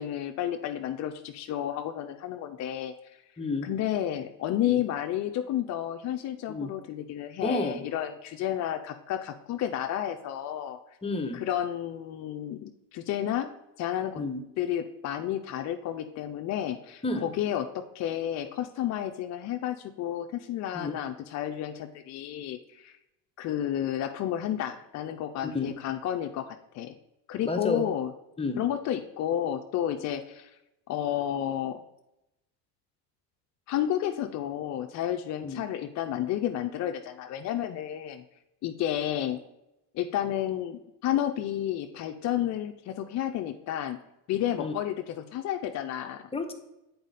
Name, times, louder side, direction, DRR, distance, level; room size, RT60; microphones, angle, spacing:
voice 1, 0.0-3.2 3.6-10.8 11.3-13.5 13.8-14.2 14.6-23.0 23.4-26.9 27.3-28.1 28.6-30.6 30.9-31.8 33.7-38.2 38.6-39.4 39.9-44.0 44.3-46.3, left 11 dB, 40° left, 5 dB, 0.4 m, -31 dB
voice 2, 3.4-3.7 4.7-4.8 6.5-6.7 7.4-7.8 11.0-11.4 14.2-14.4 17.0-17.3 20.7-21.0 25.4-25.7 27.4-27.8 28.4-28.6 35.4-35.6 44.6-44.7 46.3-46.5, left 3 dB, 15° left, 4 dB, 0.7 m, -30 dB
7.9 x 4.1 x 4.0 m, 0.91 s
supercardioid pair, 105°, 46 cm